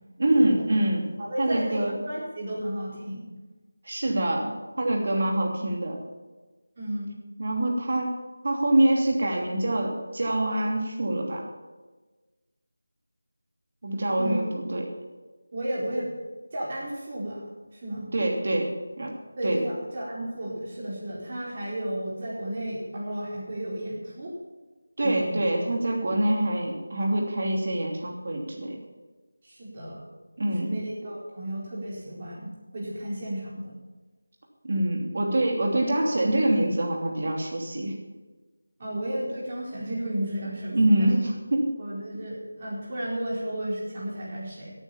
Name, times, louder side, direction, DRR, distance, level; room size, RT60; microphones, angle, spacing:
voice 1, 0.2-1.0 1.4-1.9 3.8-6.0 7.4-8.1 8.4-11.4 13.8-14.9 18.1-19.1 19.4-19.6 25.0-28.8 30.4-30.8 34.7-37.9 40.7-41.7, right 1 dB, 45° right, 0 dB, 2.8 m, -25 dB
voice 2, 1.2-3.3 4.0-4.3 6.8-7.1 14.2-14.4 15.5-16.1 16.5-17.4 17.7-18.1 19.4-24.3 25.0-25.5 29.4-30.1 30.5-33.7 38.8-41.2 41.8-44.7, right 1 dB, 30° right, -5 dB, 4.5 m, -33 dB
13.0 x 9.1 x 7.2 m, 1.2 s
figure-of-eight pair, 175°, 0 cm